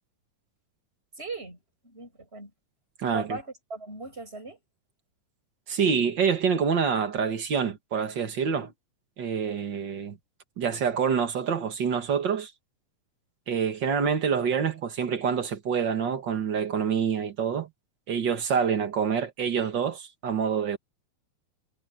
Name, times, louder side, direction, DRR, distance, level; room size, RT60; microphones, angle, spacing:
voice 1, 1.2-2.5 3.0-4.6, right 3 dB, 15° right, 6.8 m, -39 dB
voice 2, 3.0-3.4 5.7-8.7 9.2-10.2 10.6-12.5 13.5-17.7 18.1-20.8, right 6 dB, 45° right, 1.5 m, -26 dB
omnidirectional pair, 4.1 m